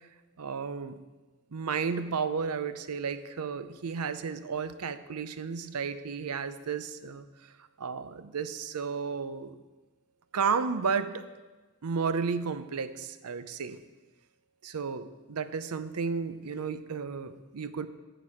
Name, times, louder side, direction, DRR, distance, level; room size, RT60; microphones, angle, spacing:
voice 1, 0.4-1.0 1.5-7.2 7.8-9.6 10.3-11.3 11.8-13.8 14.6-17.9, right 5 dB, 80° right, 12 dB, 0.6 m, -33 dB
14.5 x 6.1 x 4.9 m, 1.2 s
head